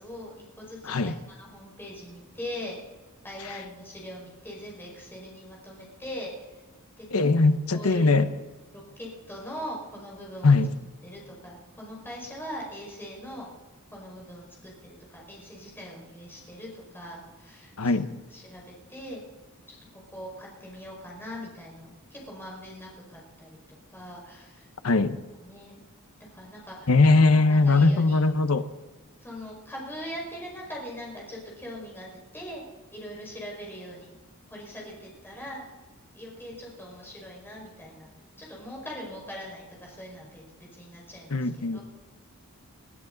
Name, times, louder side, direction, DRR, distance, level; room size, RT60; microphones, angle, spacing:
voice 1, 0.0-2.8 3.2-6.6 7.0-7.2 7.7-8.2 8.7-10.6 11.0-13.5 13.9-18.0 18.3-19.2 19.7-23.6 23.9-24.7 25.4-25.8 26.3-26.9 27.3-28.2 29.2-32.6 32.9-34.2 34.5-35.6 36.1-38.1 38.4-41.8, equal, 10° left, -3 dB, 5.3 m, -41 dB
voice 2, 7.1-8.3 10.4-10.8 17.8-18.2 24.8-25.2 26.9-28.7 41.3-41.8, left 3 dB, 75° left, 10 dB, 1.0 m, -21 dB
22.0 x 13.5 x 4.0 m, 1.2 s
head